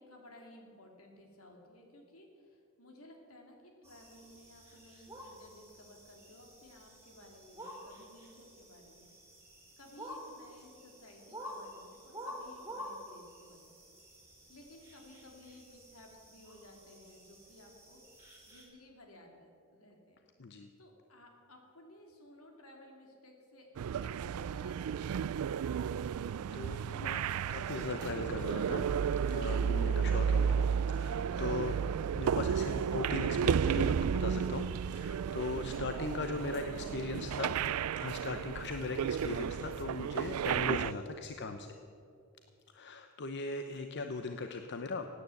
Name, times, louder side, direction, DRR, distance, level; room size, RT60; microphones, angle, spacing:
voice 1, 0.0-9.1 9.4-9.5 9.8-13.7 14.5-18.0 18.5-20.2 20.8-26.0 36.5-37.7, left 1 dB, 75° left, 2 dB, 2.9 m, -57 dB
sound 1, 3.8-18.6, equal, 10° right, 4.7 m, -50 dB
voice 2, 20.4-20.7 26.5-28.9 29.3-31.8 32.1-34.7 34.9-37.5 37.9-41.7 42.7-45.1, left 3 dB, 55° left, 7 dB, 0.7 m, -39 dB
sound 2, 23.8-40.9, right 7 dB, 90° right, 0.3 m, -33 dB
16.5 x 9.7 x 7.7 m, 2.5 s
head